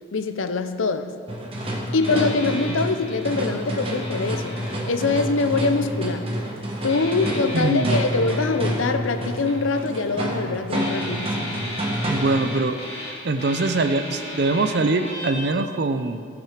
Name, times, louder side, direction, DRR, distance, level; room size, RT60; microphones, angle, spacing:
voice 1, 0.1-1.1 1.9-6.3 6.8-11.6, left 3 dB, 85° left, 9 dB, 0.7 m, -24 dB
sound 1, 1.3-12.5, equal, 30° right, 1.4 m, -28 dB
sound 2, 2.0-5.9 6.9-10.4 10.7-15.5, left 2 dB, 30° left, 2.6 m, -36 dB
voice 2, 7.5-8.0 12.0-12.8 13.2-16.3, right 3 dB, 55° right, 9 dB, 0.5 m, -23 dB
16.0 x 6.0 x 5.1 m, 2.1 s
head